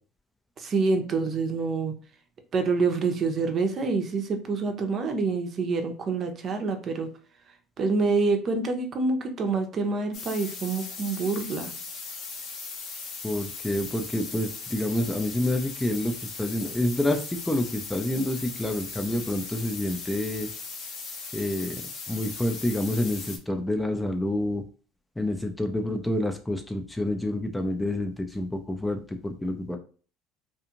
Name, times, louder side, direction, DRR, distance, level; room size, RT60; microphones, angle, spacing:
voice 1, 0.6-1.9 2.5-7.1 7.8-11.7, right 4 dB, 45° right, 5 dB, 0.6 m, -26 dB
sound 1, 10.1-23.4, left 4 dB, 60° left, 0.7 m, -38 dB
voice 2, 13.2-20.5 21.3-21.8 22.1-24.6 25.2-29.8, left 1 dB, 10° left, 5 dB, 0.4 m, -28 dB
2.6 x 2.4 x 2.8 m, 0.39 s
supercardioid pair, 85°, 0 cm